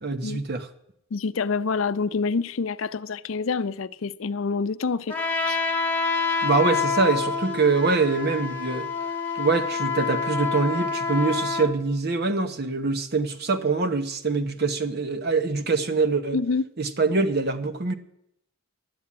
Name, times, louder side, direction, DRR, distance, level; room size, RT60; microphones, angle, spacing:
voice 1, 0.0-0.7 6.4-8.9 9.3-16.4 16.8-17.9, right 4 dB, 50° right, 0.9 m, -24 dB
voice 2, 1.1-5.1 5.5-5.6 16.3-16.7, left 4 dB, 75° left, 0.5 m, -27 dB
Trumpet, 5.1-11.7, left 5 dB, 10° left, 1.6 m, -27 dB
11.5 x 8.8 x 8.6 m
head